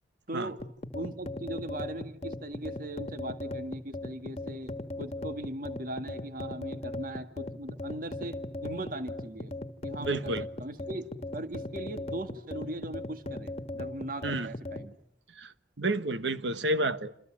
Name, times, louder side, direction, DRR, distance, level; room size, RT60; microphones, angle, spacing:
voice 1, 0.3-0.6 0.9-9.5 9.8-10.3 10.6-11.1 11.3-14.9, right 1 dB, 50° right, 2.0 m, -39 dB
sound 1, 0.6-14.9, left 1 dB, 35° left, 1.7 m, -38 dB
voice 2, 10.0-10.5 14.2-14.5 15.3-17.1, right 2 dB, 90° right, 1.5 m, -30 dB
28.5 x 27.5 x 7.5 m
head